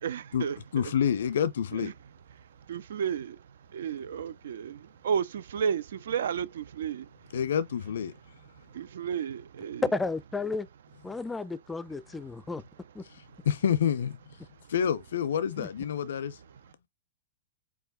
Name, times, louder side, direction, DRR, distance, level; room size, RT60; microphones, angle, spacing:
voice 1, 0.0-0.8 1.7-1.9 2.4-7.4 8.6-9.8 13.1-13.5, right 7 dB, 80° right, 0.4 m, -33 dB
voice 2, 0.7-1.9 7.3-8.1 13.1-14.2 14.7-16.4, left 8 dB, 80° left, 0.6 m, -28 dB
voice 3, 9.9-10.7 11.0-12.6 13.0-13.1 15.6-15.7, left 3 dB, 10° left, 0.4 m, -33 dB
4.8 x 2.2 x 3.8 m
hypercardioid pair, 125°, 0 cm